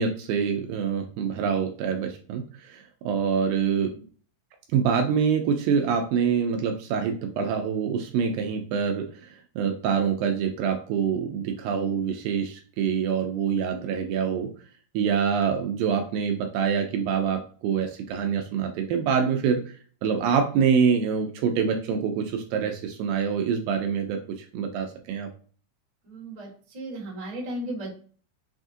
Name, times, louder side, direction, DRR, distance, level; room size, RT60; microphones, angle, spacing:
voice 1, 0.0-3.9 4.7-14.5 14.9-19.8 20.0-24.2 24.5-25.3, right 6 dB, 80° right, 4 dB, 2.2 m, -25 dB
voice 2, 26.0-26.5 26.7-27.9, right 1 dB, 35° right, -7 dB, 0.6 m, -35 dB
6.2 x 2.4 x 2.6 m, 0.43 s
omnidirectional pair, 4.3 m